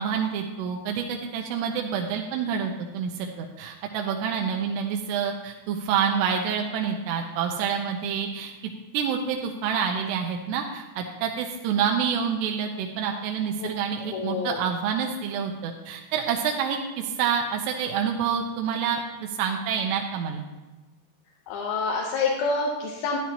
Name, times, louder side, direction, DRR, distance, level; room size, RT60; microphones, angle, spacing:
voice 1, 0.0-8.5 8.9-20.5, right 7 dB, 85° right, 2 dB, 2.9 m, -27 dB
voice 2, 14.1-14.6 21.5-23.2, left 4 dB, 75° left, -1 dB, 2.7 m, -27 dB
12.5 x 10.5 x 3.0 m, 1.2 s
omnidirectional pair, 4.8 m